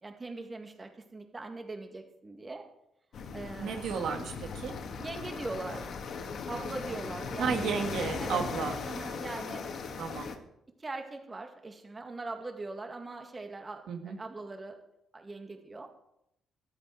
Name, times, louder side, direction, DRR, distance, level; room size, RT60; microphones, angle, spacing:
voice 1, 0.0-2.7 3.3-3.8 5.0-5.9 6.5-7.7 8.2-8.5 8.9-9.6 10.8-14.8 15.1-15.9, right 3 dB, 25° right, 5 dB, 2.0 m, -41 dB
sound 1, 3.1-10.4, left 5 dB, 65° left, 1.7 m, -38 dB
voice 2, 3.5-4.7 7.4-8.7 10.0-10.3 13.9-14.2, right 6 dB, 75° right, 4 dB, 1.6 m, -33 dB
13.0 x 11.5 x 4.8 m, 0.80 s
cardioid pair, 90°, 0 cm